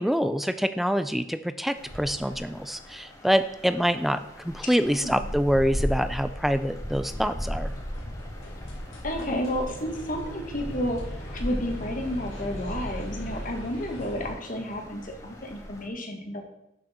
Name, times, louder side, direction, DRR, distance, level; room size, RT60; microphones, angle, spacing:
voice 1, 0.0-7.7, equal, ahead, 11 dB, 0.3 m, -26 dB
sound 1, 1.7-15.9, equal, 15° left, 1.5 m, -37 dB
voice 2, 4.9-5.2 9.0-16.4, equal, 40° left, 3 dB, 1.7 m, -31 dB
sound 2, 7.3-14.3, equal, 80° left, 3.8 m, -40 dB
11.5 x 6.4 x 4.4 m, 0.84 s
head